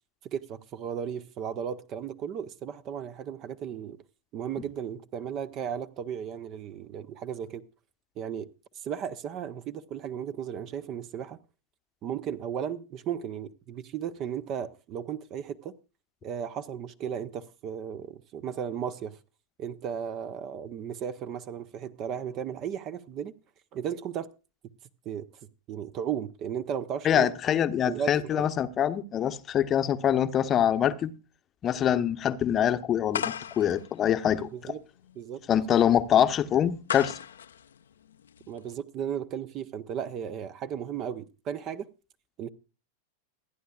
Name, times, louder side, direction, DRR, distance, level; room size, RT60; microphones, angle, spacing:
voice 1, 0.2-4.0 4.3-7.6 8.2-8.5 8.8-11.4 12.0-15.7 16.2-19.2 19.6-23.3 23.7-24.3 25.0-25.3 25.7-27.3 27.8-28.5 34.5-34.8 35.2-35.4 38.5-41.9 42.4-42.5, right 8 dB, 35° right, 0.8 m, -35 dB
voice 2, 27.0-31.1 31.6-34.7 35.5-37.2, left 10 dB, 30° left, 0.9 m, -25 dB
sound 1, 33.1-38.7, left 8 dB, 65° left, 0.6 m, -38 dB
27.0 x 10.0 x 2.4 m
figure-of-eight pair, 90°, 0 cm